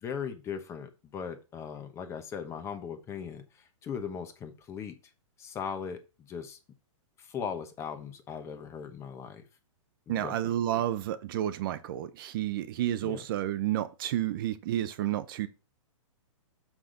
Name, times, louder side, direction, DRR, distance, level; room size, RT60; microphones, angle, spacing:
voice 1, 0.0-5.0 5.4-6.6 7.2-9.4 10.1-10.4 13.0-13.2, left 7 dB, 15° left, 1.0 m, -38 dB
voice 2, 10.1-15.5, right 12 dB, 45° right, 0.7 m, -31 dB
6.9 x 5.8 x 3.8 m
hypercardioid pair, 150°, 17 cm